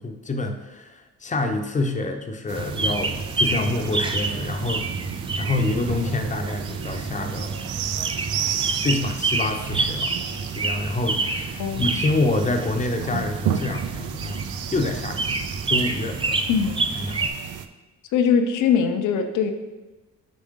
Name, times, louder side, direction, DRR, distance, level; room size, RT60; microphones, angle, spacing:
voice 1, 0.0-4.9 5.4-7.5 8.8-10.2 10.6-14.4 14.7-15.3 15.7-16.4 17.0-17.2, left 2 dB, 25° left, 5 dB, 0.7 m, -27 dB
sound 1, 2.5-17.3, right 3 dB, 15° right, 0.5 m, -28 dB
sound 2, 2.5-17.7, right 9 dB, 90° right, 0.5 m, -33 dB
voice 2, 11.6-12.1 16.5-16.8 18.1-19.5, left 7 dB, 80° left, 6 dB, 0.7 m, -21 dB
5.5 x 5.1 x 3.6 m, 1.2 s
cardioid pair, 90°, 30 cm